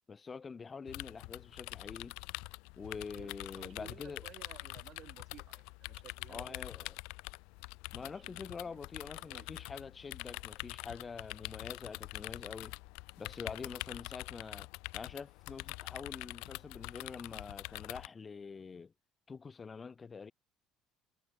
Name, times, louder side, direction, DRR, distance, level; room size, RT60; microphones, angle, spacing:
voice 1, 0.1-2.2 2.8-4.3 6.3-7.0 7.9-12.7 13.2-14.7 14.9-18.9 19.3-20.3, left 5 dB, 30° left, 2.0 m, -46 dB
sound 1, 0.9-18.1, left 29 dB, 65° left, 1.2 m, -45 dB
voice 2, 3.1-6.6 8.0-8.8 9.1-9.5 13.6-14.0, right 11 dB, 50° right, 6.4 m, -56 dB
hypercardioid pair, 60°, 0 cm